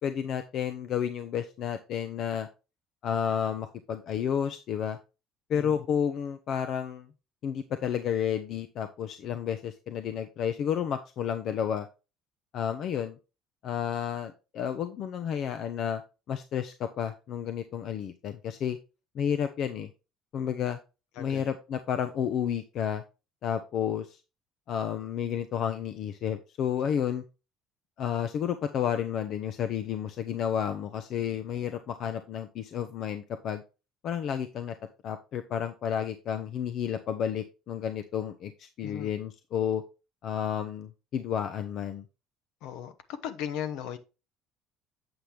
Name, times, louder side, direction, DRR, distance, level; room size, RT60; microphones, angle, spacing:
voice 1, 0.0-2.5 3.0-5.0 5.5-7.1 7.4-11.9 12.5-13.2 13.6-16.0 16.3-18.8 19.1-19.9 20.3-20.8 21.2-23.0 23.4-24.2 24.7-27.2 28.0-33.6 34.0-34.7 35.0-39.8 40.2-42.0, left 8 dB, 55° left, 0.7 m, -31 dB
voice 2, 5.5-5.9 21.2-21.4 38.8-39.1 42.6-44.0, left 9 dB, 80° left, 1.0 m, -37 dB
7.9 x 5.8 x 3.4 m
cardioid pair, 120°, 0 cm